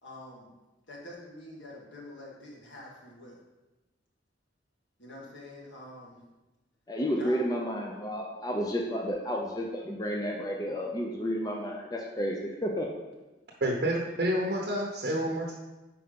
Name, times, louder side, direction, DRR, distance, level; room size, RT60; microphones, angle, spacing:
voice 1, 0.0-0.5 0.9-3.4 5.0-6.2 7.2-7.4, left 1 dB, 90° left, -3 dB, 1.7 m, -46 dB
voice 2, 6.9-12.9, equal, 20° left, 0 dB, 0.5 m, -31 dB
voice 3, 13.6-15.6, right 1 dB, 60° right, -1 dB, 0.7 m, -29 dB
5.2 x 4.4 x 5.2 m, 1.1 s
head